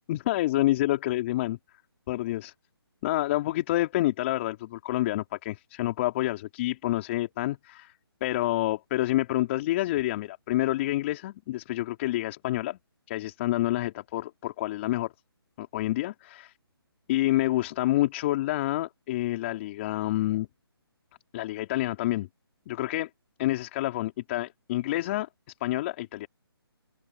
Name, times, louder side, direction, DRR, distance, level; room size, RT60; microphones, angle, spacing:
voice 1, 0.1-1.6 2.1-2.5 3.0-7.9 8.2-12.8 13.1-15.1 15.6-16.5 17.1-20.5 21.3-22.3 22.7-23.1 23.4-25.3 25.6-26.3, left 16 dB, 30° left, 3.5 m, -28 dB
open air
figure-of-eight pair, 150°, 13 cm